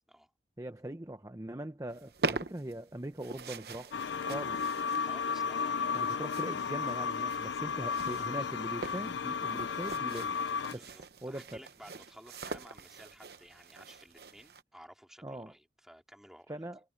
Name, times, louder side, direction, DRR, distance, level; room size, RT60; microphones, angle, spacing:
voice 1, 0.6-4.0 4.3-5.0 5.9-10.4 10.7-11.6 15.2-15.5 16.5-16.8, right 1 dB, 20° right, 0.8 m, -41 dB
sound 1, 1.9-14.6, right 3 dB, 60° right, 0.9 m, -43 dB
sound 2, 3.9-10.7, left 6 dB, 85° left, 0.4 m, -34 dB
voice 2, 5.0-6.2 7.7-8.5 10.7-16.6, equal, 5° right, 3.7 m, -55 dB
head